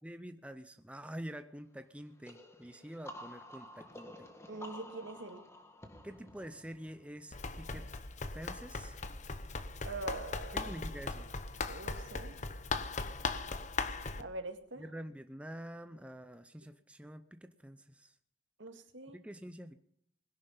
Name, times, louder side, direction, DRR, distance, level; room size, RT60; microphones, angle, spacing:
voice 1, 0.0-4.3 6.0-7.9 8.3-9.0 10.5-11.3 14.8-18.1 19.1-19.7, equal, 5° right, 9 dB, 0.6 m, -47 dB
sound 1, 2.2-7.8, left 1 dB, 15° left, 1.7 m, -51 dB
voice 2, 4.5-5.4 9.8-10.6 11.6-12.4 14.2-14.8 18.6-19.2, right 2 dB, 70° right, 6 dB, 2.1 m, -43 dB
Run, 7.3-14.2, left 3 dB, 40° left, 1.0 m, -39 dB
20.5 x 11.0 x 5.5 m, 0.66 s
head